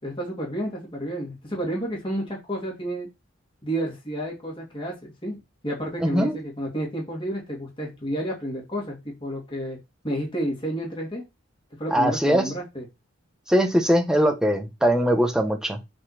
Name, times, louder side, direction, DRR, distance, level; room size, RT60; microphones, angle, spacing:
voice 1, 0.0-3.1 3.6-5.4 5.6-9.8 10.0-11.2 11.8-12.8, right 1 dB, 25° left, 2.8 m, -30 dB
voice 2, 6.0-6.4 11.9-12.5 13.5-15.8, equal, 5° right, 1.3 m, -21 dB
7.7 x 4.3 x 4.4 m
head